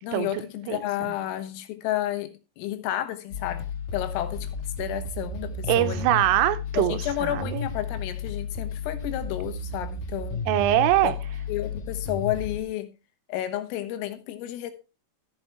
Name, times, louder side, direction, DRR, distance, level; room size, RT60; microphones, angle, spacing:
voice 1, 0.0-3.7 3.9-4.5 4.8-6.1 6.8-10.4 11.0-11.1 11.5-12.9 13.3-14.7, left 13 dB, 85° left, 3.8 m, -31 dB
sound 1, 3.3-12.6, left 4 dB, 60° left, 2.1 m, -33 dB
voice 2, 5.7-7.6 10.5-11.2, right 14 dB, 85° right, 3.3 m, -23 dB
14.5 x 5.9 x 4.4 m
omnidirectional pair, 5.9 m